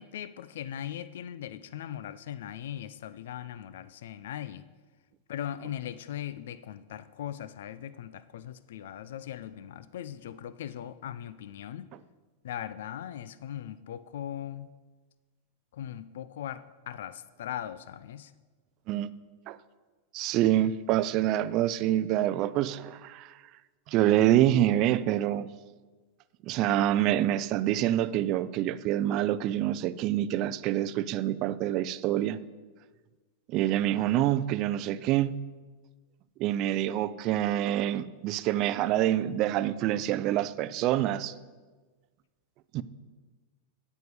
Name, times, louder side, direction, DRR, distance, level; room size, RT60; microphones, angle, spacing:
voice 1, 0.0-4.6 5.3-11.9 12.4-14.7 15.7-18.3, left 10 dB, 75° left, 0.4 m, -39 dB
voice 2, 20.1-23.3 23.9-25.5 26.4-32.4 33.5-35.3 36.4-41.3 42.7-42.8, right 13 dB, 45° right, 0.4 m, -26 dB
9.4 x 8.0 x 4.7 m
supercardioid pair, 130°, 0 cm